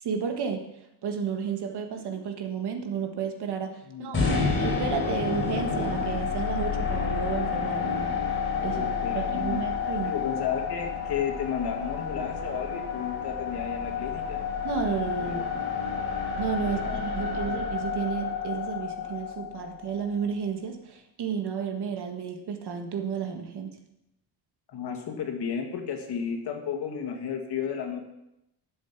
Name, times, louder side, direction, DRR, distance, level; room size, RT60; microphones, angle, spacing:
voice 1, 0.0-0.7 1.0-8.9 9.2-10.2 14.6-15.6 16.4-23.8, right 7 dB, 70° right, 4 dB, 1.8 m, -32 dB
voice 2, 3.9-4.6 8.7-9.6 10.0-14.4 15.2-15.5 16.6-17.6 24.7-28.0, left 7 dB, 70° left, 4 dB, 2.0 m, -33 dB
sound 1, 4.1-20.3, left 5 dB, 30° left, 4.4 m, -30 dB
11.5 x 7.7 x 6.0 m, 0.86 s
wide cardioid pair, 150°, 41 cm